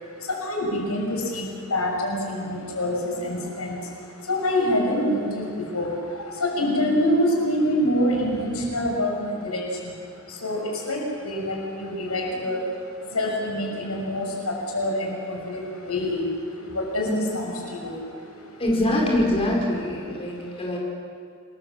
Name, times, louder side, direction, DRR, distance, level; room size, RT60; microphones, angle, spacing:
voice 1, 0.3-3.8 4.3-5.4 5.7-9.9 10.4-10.6 10.9-11.0 11.2-12.6 13.1-16.2 16.7-17.9, left 1 dB, 85° left, 0 dB, 6.4 m, -26 dB
voice 2, 18.6-20.8, left 1 dB, 25° left, -2 dB, 5.0 m, -24 dB
28.0 x 21.5 x 7.6 m, 2.2 s
head